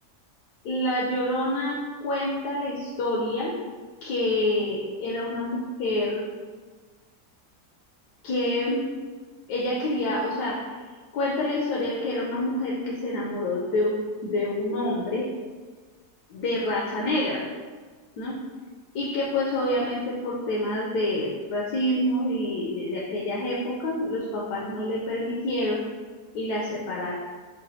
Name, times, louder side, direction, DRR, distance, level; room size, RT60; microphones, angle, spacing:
voice 1, 0.6-1.8 2.0-3.5 4.0-6.2 8.2-8.8 9.5-10.7 11.1-14.0 14.2-15.3 16.3-17.4 18.2-18.4 18.9-25.8 26.3-27.1, left 1 dB, 80° left, -4 dB, 1.1 m, -27 dB
4.9 x 2.2 x 2.7 m, 1.4 s
omnidirectional pair, 1.7 m